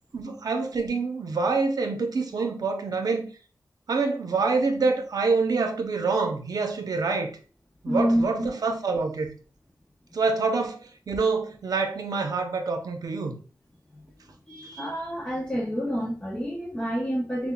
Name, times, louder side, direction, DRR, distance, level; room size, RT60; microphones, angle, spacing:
voice 1, 0.1-3.3 3.9-7.3 7.8-9.3 10.1-13.4, right 4 dB, 65° right, 0.7 m, -26 dB
voice 2, 7.9-8.5 13.9-14.0 14.5-17.5, equal, 15° left, 0.5 m, -28 dB
5.6 x 2.2 x 2.2 m
wide cardioid pair, 85°, 7 cm